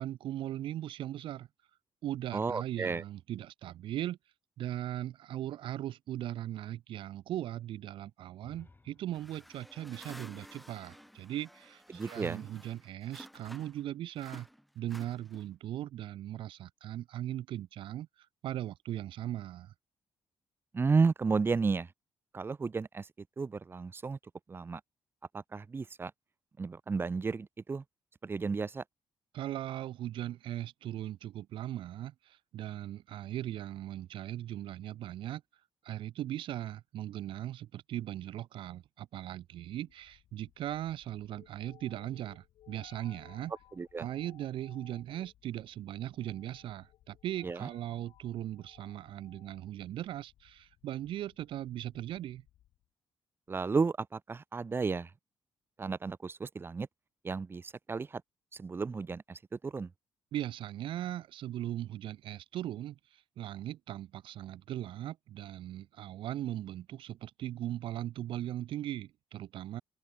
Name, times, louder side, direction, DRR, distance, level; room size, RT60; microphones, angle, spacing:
voice 1, 0.0-1.5 2.0-4.2 4.6-14.5 14.7-18.1 18.4-19.7 29.3-35.4 35.8-43.5 44.0-52.4 60.3-69.8, right 13 dB, 75° right, 0.8 m, -39 dB
voice 2, 2.3-3.0 11.9-12.5 20.7-21.9 22.3-23.1 23.4-24.2 24.5-24.8 25.3-26.1 26.6-27.8 28.2-28.8 43.8-44.1 47.4-47.7 53.5-55.1 55.8-56.9 57.2-58.2 58.5-59.9, right 4 dB, 25° right, 0.4 m, -32 dB
sound 1, 8.4-12.2, left 3 dB, 20° left, 3.5 m, -63 dB
sound 2, 9.1-13.9 14.2-15.6, equal, ahead, 2.6 m, -53 dB
sound 3, 39.5-52.9, left 13 dB, 80° left, 5.6 m, -62 dB
open air
cardioid pair, 75°, 9 cm